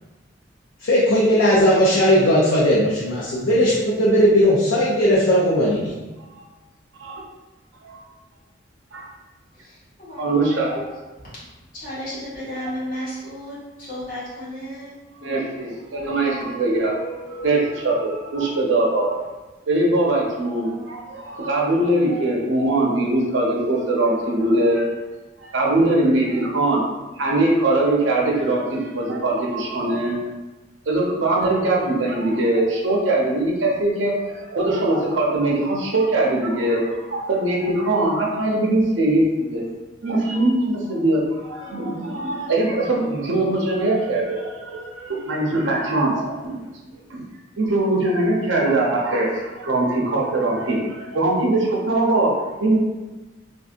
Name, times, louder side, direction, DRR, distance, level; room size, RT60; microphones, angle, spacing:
voice 1, 0.8-5.9, equal, 85° left, -6 dB, 0.6 m, -17 dB
voice 2, 9.5-11.0 11.7-14.9 15.9-16.0, equal, 45° left, -10 dB, 1.5 m, -34 dB
voice 3, 10.2-10.7 15.2-19.1 19.7-24.9 25.4-26.8 27.2-30.2 30.9-39.2 39.5-39.6 40.0-46.6 47.1-47.2 47.6-52.8, right 2 dB, 85° right, -2 dB, 0.7 m, -21 dB
3.5 x 2.6 x 2.5 m, 1.2 s
head